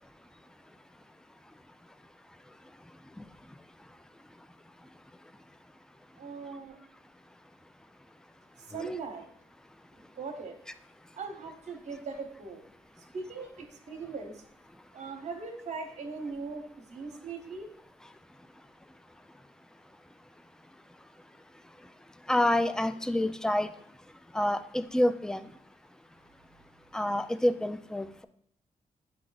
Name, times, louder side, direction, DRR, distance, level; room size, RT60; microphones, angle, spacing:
voice 1, 6.2-6.8 8.7-9.3 10.2-10.5 11.2-12.6 13.1-14.4 14.9-17.7, right 4 dB, 60° right, 4 dB, 1.0 m, -39 dB
voice 2, 22.3-23.7 24.3-25.5 26.9-28.3, left 1 dB, 5° left, 12 dB, 0.4 m, -28 dB
8.4 x 2.8 x 4.0 m, 0.71 s
cardioid pair, 70°, 13 cm